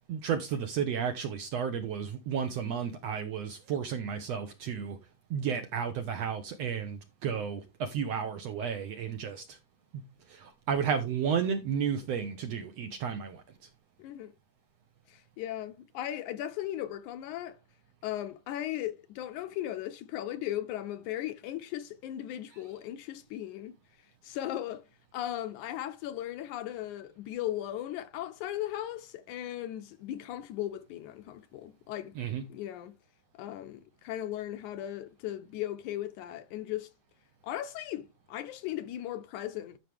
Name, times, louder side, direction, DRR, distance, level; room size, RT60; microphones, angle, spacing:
voice 1, 0.1-5.0 5.3-9.6 10.3-13.4 32.2-32.4, right 7 dB, 70° right, 1.6 m, -32 dB
voice 2, 14.0-14.3 15.1-17.6 18.0-23.8 24.2-24.9 25.1-32.1 32.5-32.9 33.3-36.9 37.4-39.8, left 12 dB, 75° left, 1.9 m, -37 dB
12.5 x 5.7 x 3.4 m
omnidirectional pair, 3.8 m